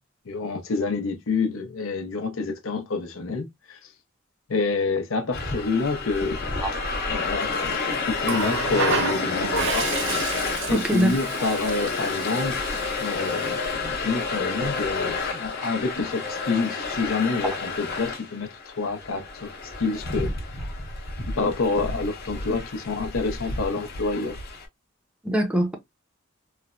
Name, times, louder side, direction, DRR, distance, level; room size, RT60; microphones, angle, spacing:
voice 1, 0.3-3.8 4.5-6.4 7.1-9.9 10.7-12.6 13.0-20.3 21.3-24.4, left 4 dB, 85° left, 0.6 m, -28 dB
sound 1, 5.3-24.7, left 4 dB, 50° left, 0.8 m, -30 dB
Water tap faucet, 8.2-13.8 15.0-15.2, right 6 dB, 60° right, 0.5 m, -31 dB
voice 2, 10.7-11.1 17.4-17.5 25.2-25.7, right 1 dB, 5° right, 0.5 m, -23 dB
3.2 x 2.0 x 2.3 m
head